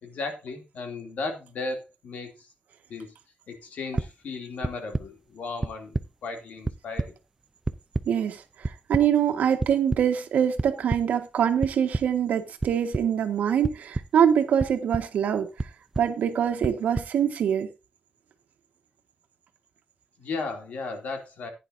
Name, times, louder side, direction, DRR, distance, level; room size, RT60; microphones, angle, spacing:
voice 1, 0.0-2.5 2.9-3.1 3.5-7.1 20.2-21.5, left 3 dB, 70° left, 2.8 m, -35 dB
sound 1, 4.0-4.1 4.6-5.0 5.6-6.0 6.4-7.1 7.7-8.0 8.6-9.0 9.6-10.0 10.6-11.0 11.6-12.0 12.6-13.0 13.6-14.1 14.6-15.0 15.6-16.0 16.6-17.1, right 2 dB, 15° right, 0.5 m, -28 dB
voice 2, 8.1-15.5 16.0-17.7, right 8 dB, 80° right, 1.6 m, -24 dB
15.0 x 10.0 x 2.7 m
wide cardioid pair, 165°, 3 cm